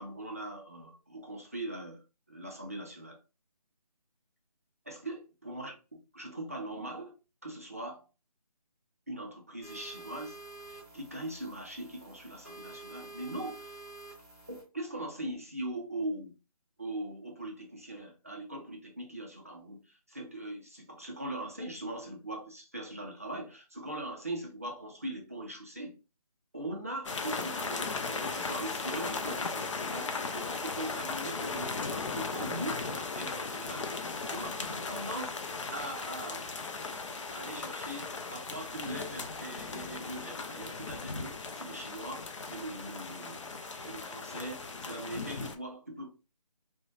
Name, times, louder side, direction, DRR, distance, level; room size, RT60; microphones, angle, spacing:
voice 1, 0.0-2.0 2.3-3.2 4.9-7.1 7.4-8.0 9.1-10.4 10.7-13.7 14.5-16.3 16.8-25.9 26.5-33.9 34.3-35.4 35.7-36.5 37.3-43.4 43.8-46.1, right 1 dB, 25° right, 0.3 m, -41 dB
sound 1, 9.6-14.6, right 2 dB, 5° right, 1.3 m, -49 dB
sound 2, 27.0-45.5, left 4 dB, 50° left, 0.4 m, -37 dB
2.4 x 2.1 x 2.7 m
figure-of-eight pair, 160°, 20 cm